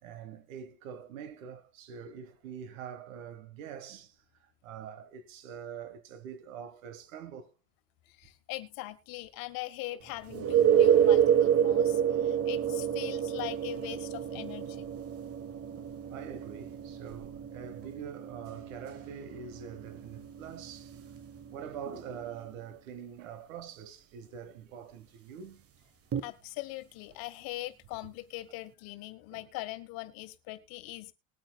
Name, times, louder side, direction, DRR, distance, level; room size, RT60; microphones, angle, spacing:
voice 1, 0.0-7.5 14.3-14.5 15.7-21.0 21.5-25.7 29.3-29.5, right 8 dB, 75° right, 1.7 m, -45 dB
voice 2, 8.1-14.9 26.2-31.1, left 18 dB, 60° left, 1.4 m, -41 dB
sound 1, 10.3-21.8 26.1-26.2, right 9 dB, 35° right, 1.2 m, -28 dB
20.5 x 8.9 x 2.3 m
hypercardioid pair, 85°, 40 cm